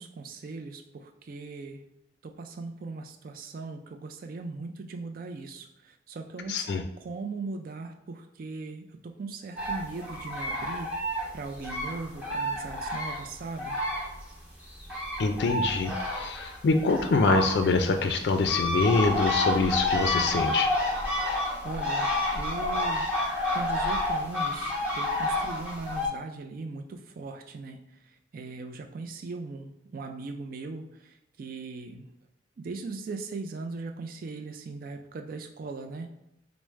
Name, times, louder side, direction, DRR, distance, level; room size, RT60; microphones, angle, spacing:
voice 1, 0.0-1.8 2.2-13.8 21.6-23.1 23.5-27.8 28.3-32.1 32.6-36.1, right 3 dB, 55° right, 5 dB, 0.4 m, -39 dB
voice 2, 6.5-6.8 15.2-20.7, left 3 dB, 70° left, 6 dB, 0.4 m, -25 dB
sound 1, 9.6-14.3 14.6-26.1, left 1 dB, 10° right, 1.0 m, -29 dB
4.6 x 2.0 x 3.1 m, 0.84 s
head